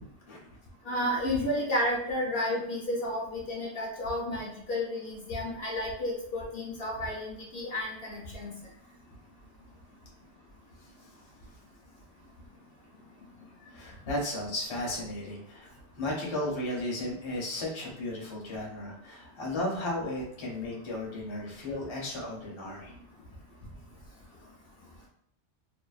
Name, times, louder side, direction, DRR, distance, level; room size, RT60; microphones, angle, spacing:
voice 1, 0.9-8.5, left 1 dB, 65° left, -3 dB, 0.8 m, -32 dB
voice 2, 13.7-15.7 15.9-22.9, left 1 dB, 30° left, -3 dB, 0.6 m, -34 dB
2.5 x 2.0 x 2.3 m, 0.71 s
omnidirectional pair, 1.1 m